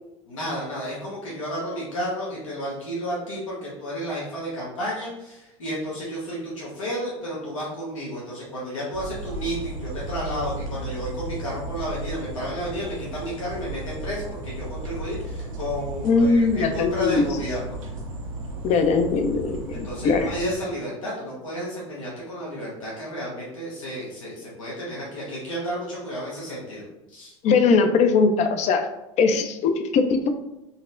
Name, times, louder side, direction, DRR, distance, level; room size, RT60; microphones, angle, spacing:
voice 1, 0.2-17.8 19.7-27.3, equal, 85° left, -6 dB, 1.0 m, -32 dB
sound 1, 8.9-20.5, right 2 dB, 80° right, 0.7 m, -34 dB
voice 2, 16.0-17.3 18.6-20.3 27.4-28.9 29.2-30.3, left 4 dB, 45° left, 7 dB, 0.5 m, -20 dB
4.0 x 2.0 x 2.5 m, 0.94 s
hypercardioid pair, 85°, 17 cm